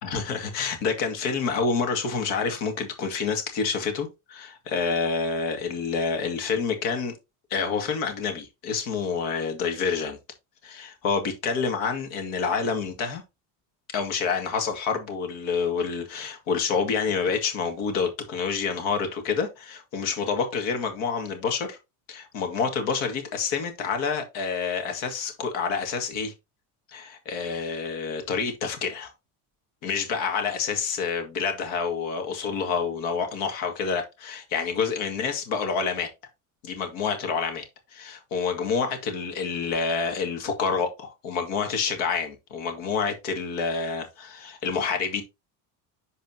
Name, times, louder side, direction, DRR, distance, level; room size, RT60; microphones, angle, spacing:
voice 1, 0.0-7.1 7.5-10.2 10.6-13.2 13.9-21.8 22.1-26.3 26.9-29.1 29.8-36.1 36.6-45.2, left 5 dB, 90° left, 2.2 m, -28 dB
11.0 x 4.2 x 2.9 m
cardioid pair, 145°, 38 cm